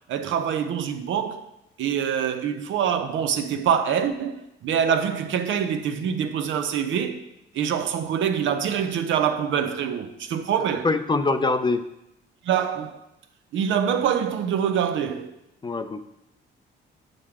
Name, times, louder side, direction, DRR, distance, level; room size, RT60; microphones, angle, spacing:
voice 1, 0.1-1.5 1.8-7.2 7.5-10.9 12.4-13.0 13.5-15.3, right 8 dB, 75° right, 0.7 m, -25 dB
voice 2, 10.6-11.8 15.6-16.0, left 3 dB, 25° left, 0.5 m, -24 dB
7.4 x 6.4 x 3.6 m
cardioid pair, 90°, 20 cm